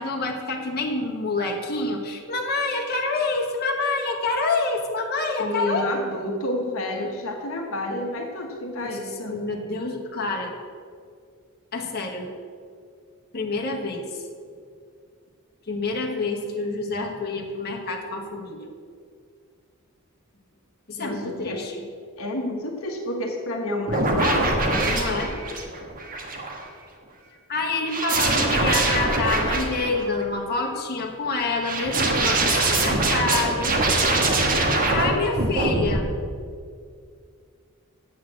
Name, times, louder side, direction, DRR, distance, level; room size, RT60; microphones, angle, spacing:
voice 1, 0.0-5.9 8.8-9.0 9.2-10.5 11.7-12.3 13.3-14.0 15.7-18.7 20.9-21.8 24.9-25.3 27.5-33.8 34.9-36.1, left 3 dB, 45° left, 0 dB, 1.4 m, -27 dB
voice 2, 5.4-9.4 21.0-21.6 22.2-24.9, left 1 dB, 65° left, 1 dB, 1.3 m, -29 dB
sound 1, 23.9-26.7 27.9-30.2 31.6-35.1 35.4-36.0, right 2 dB, 40° right, 1.5 m, -23 dB
8.4 x 7.5 x 7.7 m, 2.2 s
head